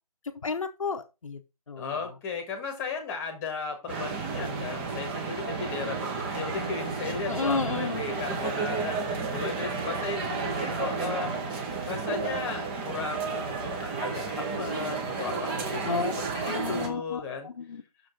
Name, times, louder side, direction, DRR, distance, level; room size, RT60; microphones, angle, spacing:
voice 1, 0.4-1.4 1.7-1.9 7.3-8.0 15.8-17.8, left 4 dB, 55° left, 5 dB, 0.9 m, -32 dB
voice 2, 1.8-9.0 9.3-11.3 11.9-17.5, left 4 dB, 10° left, 3 dB, 1.6 m, -35 dB
sound 1, 3.9-16.9, right 4 dB, 15° right, 1.0 m, -32 dB
6.8 x 5.2 x 5.2 m, 0.27 s
figure-of-eight pair, 155°, 20 cm